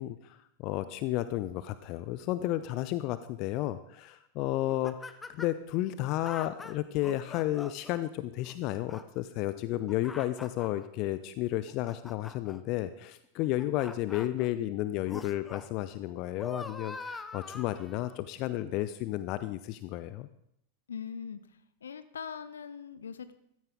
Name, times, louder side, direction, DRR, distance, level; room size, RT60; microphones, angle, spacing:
voice 1, 0.0-20.3, left 14 dB, 40° left, 13 dB, 0.6 m, -32 dB
sound 1, 4.7-5.6 6.2-8.0 8.4-9.0 9.6-10.8 11.5-12.6 13.4-14.5 15.1-15.7 16.1-18.2 18.8-18.9, left 3 dB, 10° left, 0.8 m, -44 dB
voice 2, 20.9-21.4 21.8-23.3, left 7 dB, 70° left, 12 dB, 0.8 m, -41 dB
14.5 x 13.5 x 3.7 m, 0.74 s
figure-of-eight pair, 90°, 0 cm